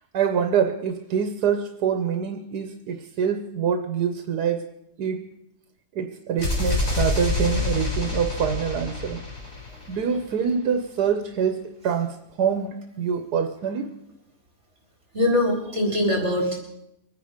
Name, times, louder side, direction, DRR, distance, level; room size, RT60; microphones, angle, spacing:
voice 1, 0.1-4.7 5.0-5.3 5.9-9.2 9.9-13.9, right 7 dB, 90° right, 6 dB, 1.5 m, -25 dB
sound 1, 6.4-10.2, left 3 dB, 55° left, 4.7 m, -27 dB
voice 2, 15.1-16.6, left 1 dB, 45° right, -1 dB, 4.4 m, -22 dB
24.5 x 9.6 x 5.1 m, 0.83 s
omnidirectional pair, 1.7 m